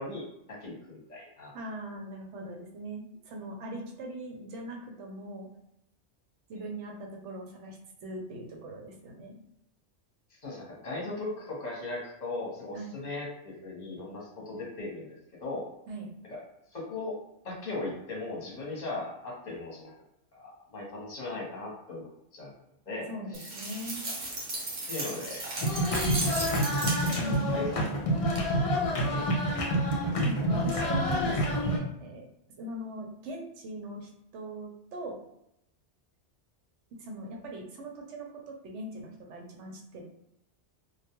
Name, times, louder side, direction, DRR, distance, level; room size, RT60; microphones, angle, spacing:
voice 1, 0.0-1.5 10.4-15.6 16.3-16.4 16.7-17.2 17.4-19.9 20.3-22.5 22.9-23.5 24.9-25.4 27.5-28.3 29.1-29.6, left 2 dB, 40° left, -3 dB, 0.9 m, -38 dB
voice 2, 1.5-5.5 6.5-9.3 12.7-12.9 15.9-16.1 23.1-24.1 27.2-28.0 30.2-32.3 32.6-35.2 37.0-40.0, right 1 dB, 85° right, 1 dB, 0.9 m, -40 dB
sound 1, 23.3-27.5, right 2 dB, 55° right, 1.0 m, -35 dB
sound 2, 25.6-31.8, equal, 65° left, 0.3 m, -27 dB
2.2 x 2.2 x 2.8 m, 0.79 s
omnidirectional pair, 1.2 m